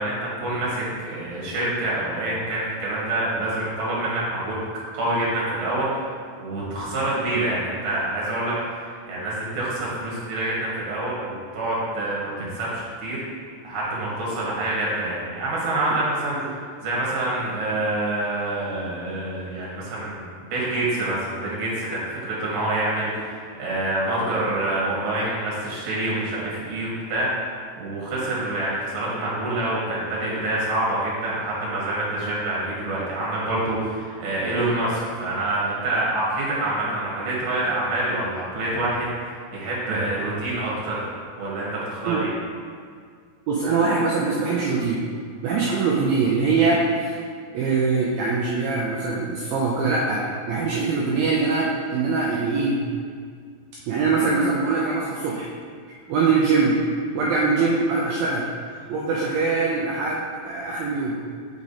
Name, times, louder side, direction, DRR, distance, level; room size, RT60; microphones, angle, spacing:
voice 1, 0.0-6.1 6.4-13.2 13.6-27.5 27.8-41.1 41.4-42.3, right 1 dB, 55° right, -6 dB, 2.7 m, -26 dB
voice 2, 43.5-45.0 45.4-47.2 47.5-52.8 53.9-55.5 56.1-56.8 57.2-58.5 58.9-61.2, right 4 dB, 85° right, -3 dB, 2.0 m, -22 dB
6.0 x 4.9 x 4.1 m, 2.1 s
omnidirectional pair, 4.9 m